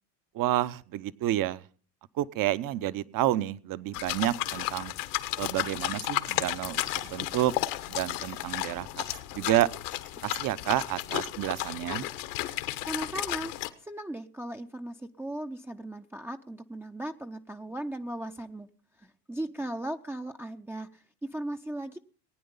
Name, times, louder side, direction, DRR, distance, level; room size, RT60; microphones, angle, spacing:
voice 1, 0.3-1.6 2.2-4.9 5.4-7.5 7.9-8.9 9.3-9.7 10.2-12.1, right 14 dB, 40° right, 16 dB, 0.9 m, -29 dB
sound 1, 3.9-13.7, left 16 dB, 70° left, 1.5 m, -33 dB
voice 2, 12.9-13.5 13.8-18.7 19.0-22.0, right 1 dB, 5° right, 4 dB, 0.6 m, -37 dB
19.5 x 9.4 x 5.5 m, 0.41 s
hypercardioid pair, 95°, 49 cm